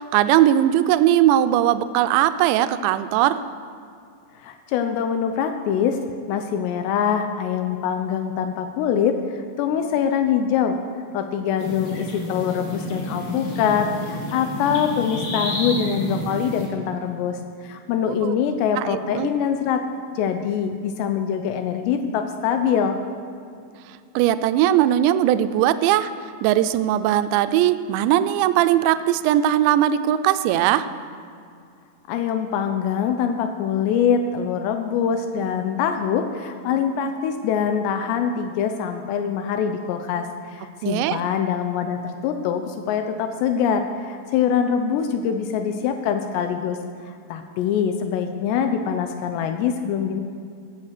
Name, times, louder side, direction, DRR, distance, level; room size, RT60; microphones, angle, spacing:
voice 1, 0.0-3.4 18.0-18.4 18.8-19.3 24.2-26.1 26.4-30.9 40.8-41.2, right 12 dB, 85° right, 11 dB, 2.6 m, -19 dB
voice 2, 4.4-6.0 6.3-10.8 11.1-17.4 17.6-19.8 20.2-23.0 32.1-46.8 47.1-50.2, left 7 dB, 85° left, 7 dB, 2.5 m, -24 dB
sound 1, 11.6-16.7, left 1 dB, 50° left, 2.6 m, -30 dB
15.0 x 8.4 x 6.5 m, 2.4 s
omnidirectional pair, 5.7 m